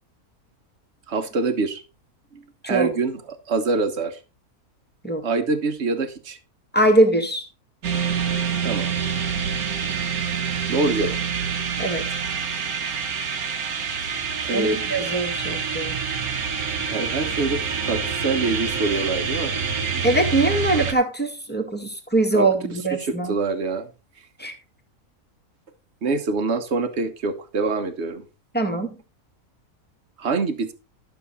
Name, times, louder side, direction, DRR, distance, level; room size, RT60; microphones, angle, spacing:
voice 1, 1.1-1.8 2.3-4.2 5.2-6.4 8.6-8.9 10.7-11.2 14.4-14.9 16.9-19.5 22.3-22.5 22.9-23.9 26.0-28.2 30.2-30.7, right 3 dB, 50° right, 8 dB, 1.5 m, -25 dB
voice 2, 6.7-7.4 11.8-12.1 14.5-16.0 20.0-23.3 24.4-24.5 28.5-28.9, right 2 dB, 5° left, 3 dB, 1.8 m, -22 dB
sound 1, 7.8-20.9, right 6 dB, 75° right, 1.7 m, -26 dB
12.0 x 6.8 x 4.1 m, 0.31 s
omnidirectional pair, 1.6 m